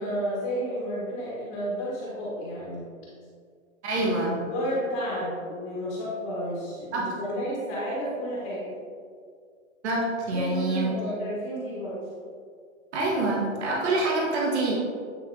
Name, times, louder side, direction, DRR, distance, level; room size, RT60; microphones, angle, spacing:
voice 1, 0.0-2.8 4.0-4.1 4.5-8.7 10.3-12.0, equal, 20° left, -7 dB, 1.3 m, -31 dB
voice 2, 3.8-4.4 6.9-7.0 9.8-11.0 12.9-14.7, right 2 dB, 55° right, -3 dB, 1.4 m, -26 dB
9.2 x 3.2 x 3.7 m, 2.1 s
hypercardioid pair, 170°, 40 cm